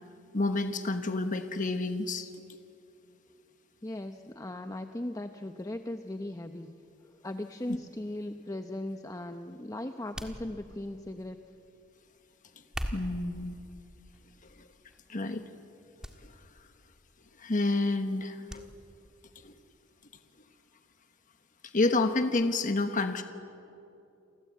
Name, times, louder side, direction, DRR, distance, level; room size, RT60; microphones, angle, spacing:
voice 1, 0.3-2.3 12.9-13.6 15.1-15.4 17.4-18.6 19.4-19.5 21.7-23.2, left 2 dB, 40° left, 7 dB, 1.2 m, -29 dB
voice 2, 3.8-6.7 7.1-11.4, left 1 dB, 15° left, 7 dB, 0.8 m, -38 dB
sound 1, 10.1-11.0 12.6-13.3 14.1-14.4 14.9-15.0 16.0-16.2 16.5-16.6 18.5-18.7 19.0-19.1, equal, 5° right, 1.8 m, -39 dB
29.5 x 23.5 x 8.4 m, 2.7 s
head